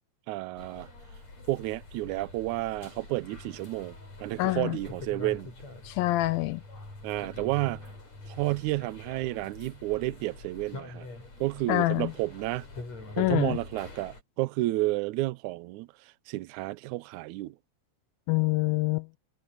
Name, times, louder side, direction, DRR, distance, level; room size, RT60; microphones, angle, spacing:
voice 1, 0.3-0.9 1.5-3.9 4.2-5.5 7.0-7.8 8.3-11.1 11.4-12.7 13.2-15.9 16.3-17.5, right 19 dB, 85° right, 1.7 m, -31 dB
sound 1, 0.6-14.2, left 2 dB, 45° left, 9.2 m, -45 dB
voice 2, 4.4-4.8 5.8-6.6 11.7-12.1 13.2-13.6 18.3-19.1, left 20 dB, 85° left, 2.4 m, -26 dB
omnidirectional pair, 4.1 m